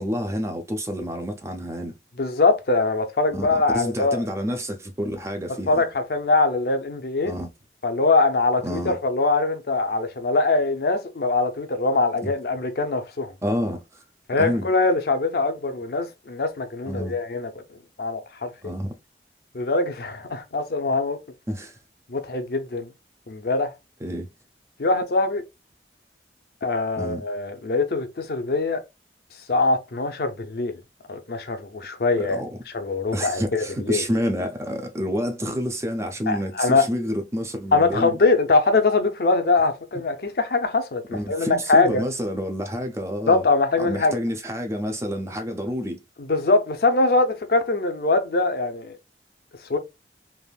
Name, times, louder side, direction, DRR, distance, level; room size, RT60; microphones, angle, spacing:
voice 1, 0.0-1.9 3.3-5.8 7.2-7.5 8.6-9.0 12.2-12.3 13.4-13.8 14.4-14.7 16.9-17.2 18.6-19.0 21.5-21.8 24.0-24.3 27.0-27.2 32.2-32.5 33.1-38.2 41.1-43.4 43.8-46.0, equal, 15° right, 0.5 m, -28 dB
voice 2, 2.2-4.2 5.7-7.3 7.8-13.3 14.3-17.5 18.0-18.5 19.5-21.2 22.1-22.9 23.3-23.7 24.8-25.4 26.6-28.8 29.5-30.8 31.1-32.4 32.7-34.0 36.3-36.9 37.7-42.0 43.3-44.2 46.2-49.0 49.7-49.8, left 3 dB, 60° left, 0.6 m, -22 dB
3.4 x 2.5 x 2.3 m
head